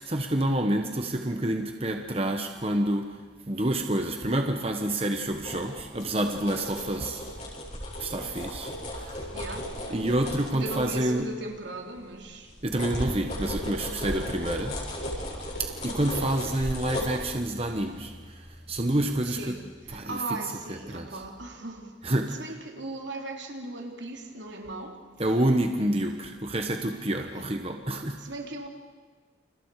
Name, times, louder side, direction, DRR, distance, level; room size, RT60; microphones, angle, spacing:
voice 1, 0.0-3.2 3.5-7.2 8.0-8.7 9.0-9.2 9.9-11.2 12.6-14.8 15.6-18.4 18.7-19.5 19.9-20.2 20.7-21.2 22.0-22.4 25.2-28.2, right 1 dB, 30° right, 1.2 m, -28 dB
sound 1, 5.4-11.5 11.9-19.4 19.8-20.0, equal, 40° left, 6.8 m, -36 dB
voice 2, 9.3-10.1 10.5-13.2 19.2-25.0 27.3-27.6 28.2-28.7, right 2 dB, 75° right, 3.1 m, -38 dB
29.5 x 28.5 x 4.9 m
head